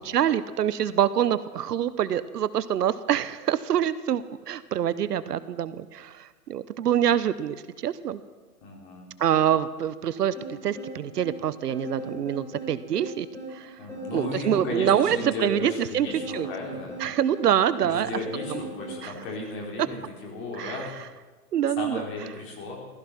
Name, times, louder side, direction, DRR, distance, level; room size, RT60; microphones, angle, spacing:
voice 1, 0.0-8.2 9.2-13.3 13.5-13.7 14.1-16.1 16.3-16.5 17.0-18.1 18.5-18.6 19.0-19.1 20.6-20.8 21.5-22.1, right 10 dB, 75° right, 15 dB, 1.0 m, -25 dB
voice 2, 8.6-9.1 13.8-17.0 17.8-21.1 21.8-22.8, left 2 dB, 25° left, -1 dB, 4.1 m, -35 dB
sound 1, 10.3-19.0, right 1 dB, 5° left, 3.9 m, -38 dB
15.5 x 15.5 x 5.9 m, 1.3 s
hypercardioid pair, 145°, 48 cm